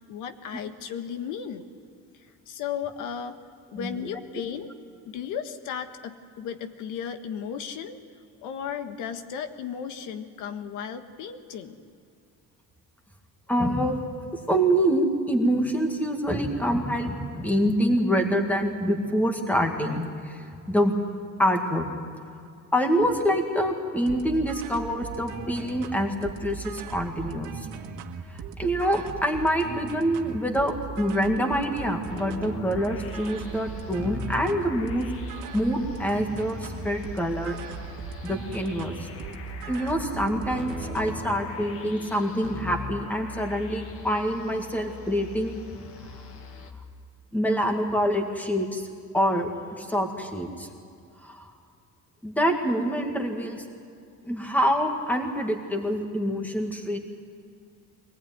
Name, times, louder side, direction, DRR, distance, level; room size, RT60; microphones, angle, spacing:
voice 1, 0.1-1.7 2.1-3.4 3.7-4.7 5.0-8.0 8.4-11.8, left 8 dB, 85° left, 8 dB, 1.6 m, -35 dB
voice 2, 13.5-14.0 14.5-21.0 21.4-21.9 22.7-27.7 28.3-35.1 35.5-37.6 38.2-39.1 39.7-45.6 47.3-48.9 49.1-50.7 51.2-51.5 52.2-53.6 54.2-57.0, equal, 5° left, 3 dB, 2.1 m, -26 dB
sound 1, 24.1-41.4, right 7 dB, 75° right, 1.7 m, -39 dB
sound 2, 32.1-46.7, left 4 dB, 45° left, 2.0 m, -40 dB
24.0 x 19.0 x 9.4 m, 2.4 s
cardioid pair, 175°, 30 cm